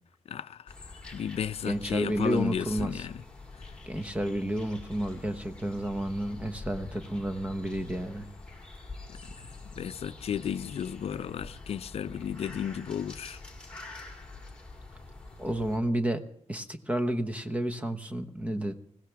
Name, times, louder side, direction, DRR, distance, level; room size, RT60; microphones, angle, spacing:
voice 1, 0.3-3.2 3.6-3.7 9.1-13.4, left 8 dB, 60° left, 0.6 m, -34 dB
sound 1, 0.7-15.8, left 3 dB, 10° left, 2.3 m, -46 dB
voice 2, 1.6-2.9 3.9-8.3 15.4-16.2 16.5-18.7, right 1 dB, 10° right, 1.1 m, -31 dB
21.0 x 16.5 x 3.5 m
wide cardioid pair, 155°, 12 cm